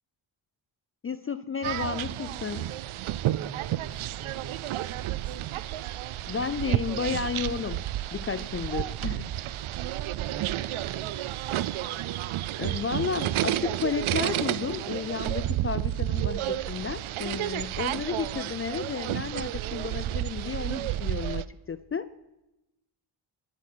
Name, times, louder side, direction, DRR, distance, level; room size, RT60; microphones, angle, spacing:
voice 1, 1.0-2.7 6.3-7.9 8.1-9.3 12.6-22.1, left 6 dB, 30° left, 14 dB, 0.4 m, -32 dB
sound 1, 1.6-21.5, right 14 dB, 90° right, 0.6 m, -31 dB
voice 2, 3.1-5.5 10.2-11.8, right 7 dB, 45° right, 12 dB, 1.1 m, -45 dB
22.0 x 8.6 x 6.1 m, 0.98 s
wide cardioid pair, 105°, 47 cm